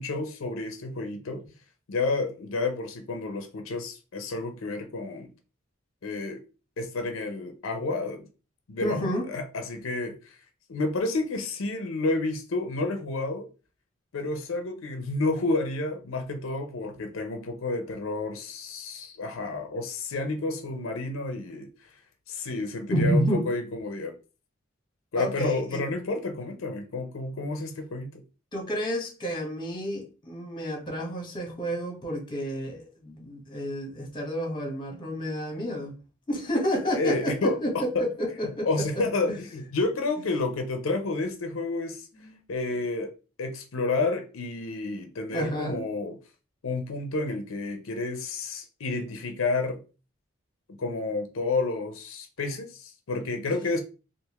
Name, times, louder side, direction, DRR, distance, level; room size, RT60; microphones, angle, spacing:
voice 1, 0.0-1.4 1.9-5.3 6.0-6.4 6.8-8.3 8.7-9.0 9.3-10.4 10.7-13.5 14.1-21.7 22.3-24.1 25.1-28.2 36.9-37.6 38.7-42.0 42.5-43.1 43.4-46.1 46.6-49.8 50.8-53.8, left 3 dB, 85° left, 0.6 m, -30 dB
voice 2, 8.8-9.2 22.9-23.4 25.1-25.8 28.5-35.9 36.3-39.0 39.3-39.4 42.1-42.4 45.3-45.8, equal, 25° left, 1.1 m, -30 dB
3.4 x 2.5 x 3.0 m
head